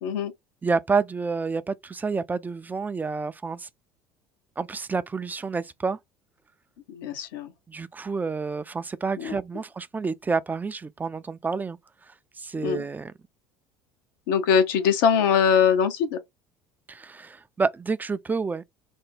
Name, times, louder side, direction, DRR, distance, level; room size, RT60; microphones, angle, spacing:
voice 1, 0.0-0.3 6.9-7.5 9.2-9.3 12.6-12.8 14.3-16.2, left 7 dB, 75° left, 0.7 m, -22 dB
voice 2, 0.6-3.7 4.6-6.0 7.7-11.8 12.4-13.1 16.9-18.6, right 4 dB, 15° right, 0.4 m, -29 dB
3.4 x 2.0 x 3.4 m
hypercardioid pair, 70°, 11 cm